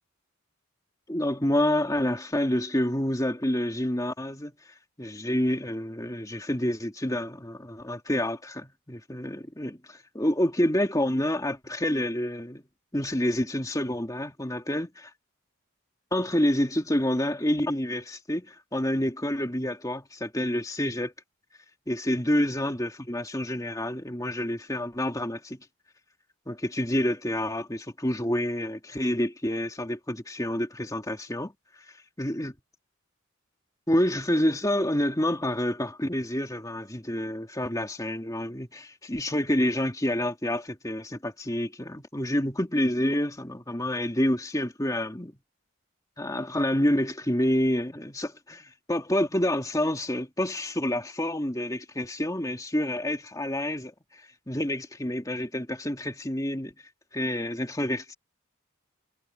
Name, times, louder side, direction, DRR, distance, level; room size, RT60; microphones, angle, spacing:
voice 1, 1.1-4.5 5.0-12.6 12.9-15.1 16.1-21.1 21.9-25.6 26.5-31.5 31.9-32.5 33.9-45.4 46.2-56.7 57.1-58.1, left 1 dB, 15° left, 2.5 m, -28 dB
head